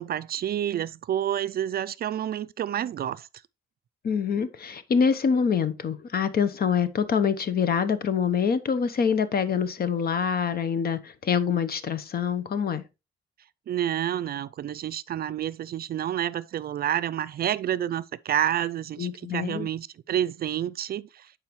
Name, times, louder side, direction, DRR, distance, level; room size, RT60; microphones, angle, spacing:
voice 1, 0.0-3.3 13.7-21.3, right 10 dB, 50° right, 0.4 m, -29 dB
voice 2, 4.0-12.8 19.0-19.7, left 6 dB, 50° left, 0.9 m, -25 dB
10.5 x 4.9 x 3.1 m
cardioid pair, 90°, 20 cm